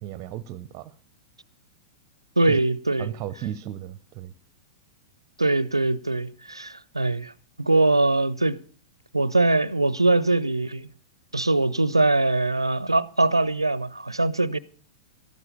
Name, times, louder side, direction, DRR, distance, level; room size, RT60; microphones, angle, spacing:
voice 1, 0.0-0.9 2.5-2.6 3.0-4.3, right 12 dB, 35° right, 0.7 m, -34 dB
voice 2, 2.4-3.1 5.4-7.3 7.6-8.6 9.1-10.9 11.3-14.6, right 2 dB, 85° right, 0.5 m, -22 dB
13.0 x 12.5 x 5.4 m
figure-of-eight pair, 100°, 2 cm